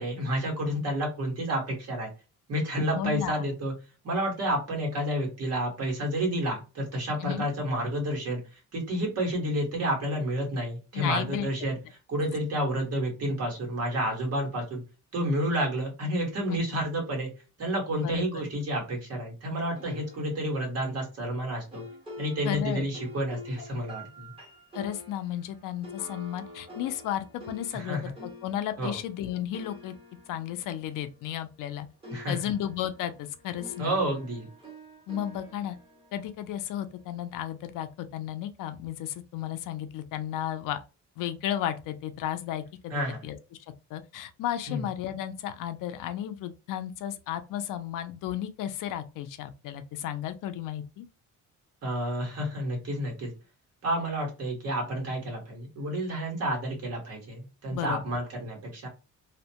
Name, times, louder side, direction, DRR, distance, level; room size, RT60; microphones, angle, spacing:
voice 1, 0.0-2.1 2.5-3.7 4.0-8.4 8.7-11.8 12.1-14.8 15.1-17.3 17.6-21.8 22.2-24.3 27.7-28.1 28.8-29.0 32.1-32.4 33.8-34.5 42.9-43.2 44.7-44.8 51.8-53.3 53.8-58.9, equal, 50° right, 1.5 m, -30 dB
voice 2, 2.9-3.5 7.2-7.5 10.9-11.5 16.5-16.8 18.0-18.2 22.4-22.9 24.7-29.9 30.3-31.9 32.3-34.0 35.1-35.8 36.1-40.8 41.2-43.4 43.9-51.1 57.7-58.0, left 11 dB, 80° left, 0.5 m, -33 dB
sound 1, 19.7-31.7 32.0-37.2, left 1 dB, 15° right, 1.2 m, -48 dB
2.8 x 2.1 x 2.8 m
cardioid pair, 145°, 31 cm